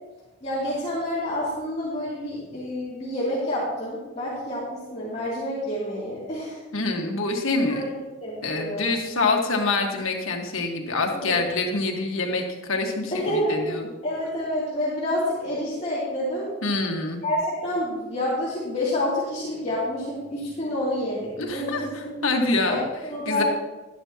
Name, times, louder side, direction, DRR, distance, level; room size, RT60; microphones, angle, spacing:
voice 1, 0.4-6.6 7.6-8.9 11.1-11.4 13.1-13.7 14.0-16.5 17.2-22.2 22.7-23.4, left 1 dB, 35° left, -9 dB, 2.7 m, -28 dB
voice 2, 6.7-7.8 8.4-13.9 16.6-17.2 21.4-22.8 23.3-23.4, left 3 dB, 90° left, 2 dB, 1.5 m, -26 dB
11.5 x 11.0 x 2.9 m, 1.1 s
head